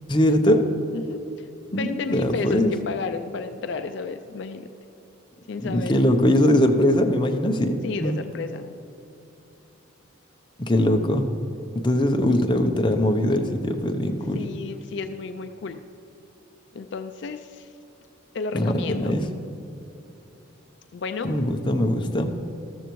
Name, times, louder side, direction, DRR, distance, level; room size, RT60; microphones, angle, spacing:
voice 1, 0.1-0.6 1.7-2.7 5.6-8.2 10.7-11.3 11.7-14.4 18.5-19.2 21.2-22.3, left 1 dB, 25° left, 4 dB, 0.7 m, -21 dB
voice 2, 0.9-4.7 5.5-5.9 7.8-8.7 14.3-15.8 16.7-17.7 18.3-19.2 20.9-21.3, left 4 dB, 60° left, 8 dB, 0.4 m, -32 dB
13.5 x 13.0 x 3.1 m, 2.9 s
head